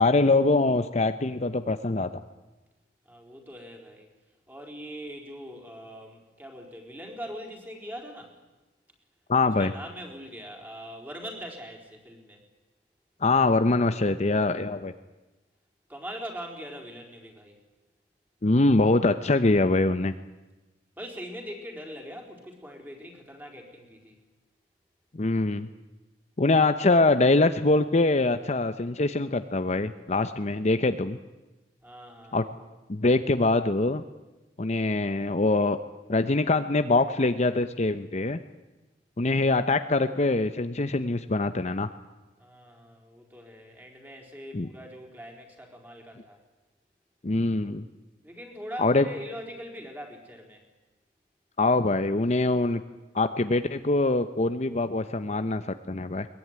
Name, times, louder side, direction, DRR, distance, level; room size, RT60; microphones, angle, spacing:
voice 1, 0.0-2.1 9.3-9.7 13.2-14.9 18.4-20.1 25.1-25.7 26.4-31.2 32.3-32.4 32.9-34.0 34.6-35.8 36.1-38.4 39.2-41.9 44.5-44.7 47.2-47.9 48.8-49.1 51.6-52.8 53.1-55.6 55.9-56.3, left 2 dB, 40° left, 9 dB, 0.8 m, -23 dB
voice 2, 3.0-4.1 4.5-8.3 9.6-12.4 15.9-17.6 21.0-24.2 31.8-32.4 42.4-46.4 48.2-50.6, equal, 10° right, 2 dB, 4.4 m, -42 dB
22.0 x 20.5 x 9.6 m, 1.1 s
head